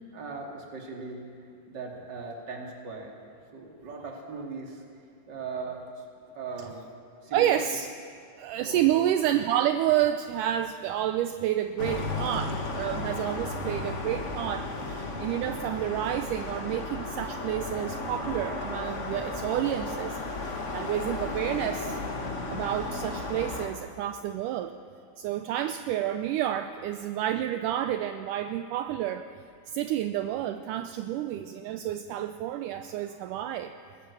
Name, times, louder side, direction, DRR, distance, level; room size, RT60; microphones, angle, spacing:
voice 1, 0.1-1.3 1.7-3.2 3.5-4.8 5.3-5.9 6.3-6.9 7.2-7.6 8.7-9.0, right 4 dB, 30° right, 0 dB, 2.8 m, -39 dB
voice 2, 7.3-7.9 8.4-20.2 20.5-22.0 22.5-24.7 25.2-29.3 29.7-33.7, right 11 dB, 80° right, 9 dB, 1.9 m, -29 dB
sound 1, 11.8-23.7, left 2 dB, 80° left, 0.6 m, -34 dB
25.0 x 19.0 x 7.0 m, 2.4 s
omnidirectional pair, 4.3 m